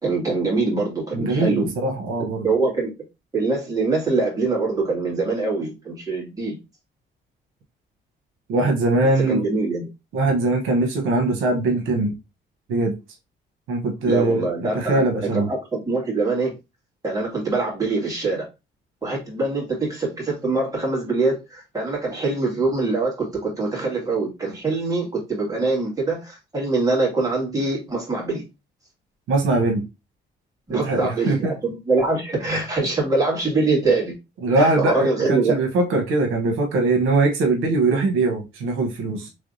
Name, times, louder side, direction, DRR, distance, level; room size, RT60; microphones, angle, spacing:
voice 1, 0.0-1.7 2.4-2.9 3.3-6.6 9.3-9.9 14.0-15.0 15.3-16.5 17.0-18.5 19.0-28.4 30.7-34.2 34.6-35.6 35.9-36.0, right 3 dB, 20° right, 2.1 m, -23 dB
voice 2, 1.1-2.5 8.5-9.4 10.1-12.1 12.7-13.0 13.7-14.5 14.7-15.5 29.3-29.9 30.7-31.5 34.4-39.3, right 2 dB, 85° right, 0.9 m, -21 dB
3.4 x 3.3 x 2.6 m
cardioid pair, 90°, 20 cm